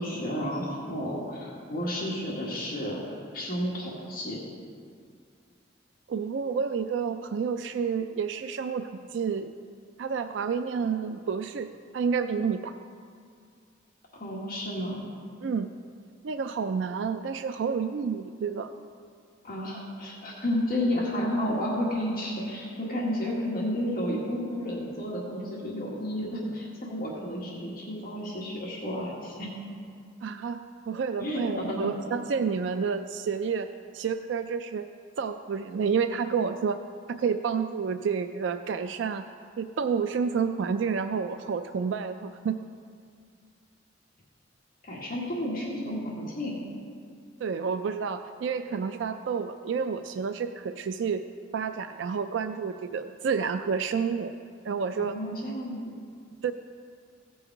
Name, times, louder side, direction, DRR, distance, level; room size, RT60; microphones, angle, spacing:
voice 1, 0.0-4.4 14.1-15.0 19.4-29.5 31.2-31.8 44.8-46.5 55.0-55.8, equal, 50° left, -4 dB, 1.7 m, -31 dB
voice 2, 6.1-9.5 10.0-11.7 11.9-12.7 15.4-15.7 16.2-18.7 30.2-30.6 30.9-33.7 33.9-34.9 35.2-36.8 37.1-39.2 39.6-42.5 47.4-51.2 51.5-54.3 54.6-55.2 56.4-56.5, right 6 dB, 65° right, 9 dB, 0.4 m, -29 dB
16.5 x 5.5 x 4.6 m, 2.2 s
head